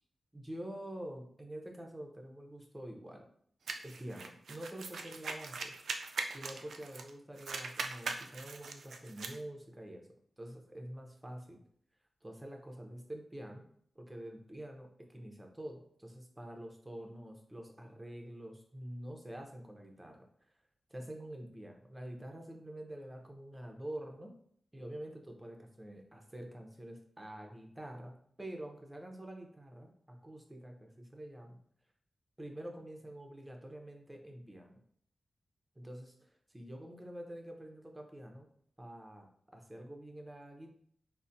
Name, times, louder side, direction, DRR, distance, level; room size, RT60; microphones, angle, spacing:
voice 1, 0.3-3.3 3.8-5.8 6.3-10.1 10.4-11.6 12.2-13.7 14.0-20.3 20.9-24.4 24.7-31.6 32.4-34.8 35.8-38.5 38.8-40.7, right 1 dB, 15° right, 2 dB, 0.7 m, -47 dB
sound 1, 3.7-7.1 7.4-9.4, right 4 dB, 80° right, 0.3 m, -41 dB
3.9 x 2.2 x 2.6 m, 0.64 s
cardioid pair, 60°, 0 cm